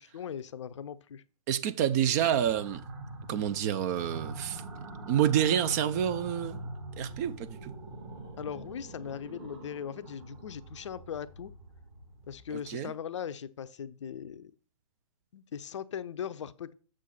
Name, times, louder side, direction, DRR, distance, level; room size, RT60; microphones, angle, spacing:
voice 1, 0.1-1.2 8.4-11.5 12.2-14.5 15.3-16.7, left 8 dB, 55° left, 0.6 m, -39 dB
voice 2, 1.5-2.8 3.3-4.6 5.1-6.6 7.0-7.7 12.7-12.9, right 10 dB, 30° right, 0.5 m, -28 dB
sound 1, 2.3-12.7, right 2 dB, 45° right, 3.6 m, -43 dB
7.5 x 6.4 x 4.1 m
figure-of-eight pair, 120°, 19 cm